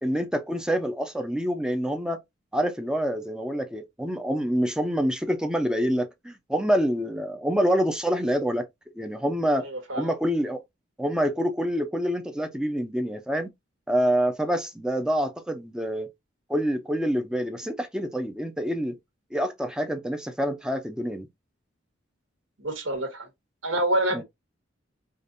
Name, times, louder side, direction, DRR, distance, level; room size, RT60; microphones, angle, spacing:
voice 1, 0.0-2.2 2.5-8.7 9.0-9.7 9.9-10.6 11.0-13.5 13.9-16.1 16.5-19.0 19.3-21.3 24.1-24.2, equal, 5° right, 0.5 m, -26 dB
voice 2, 9.6-10.1 22.6-23.3 23.6-24.2, right 1 dB, 80° right, 1.4 m, -27 dB
5.0 x 2.5 x 2.5 m
head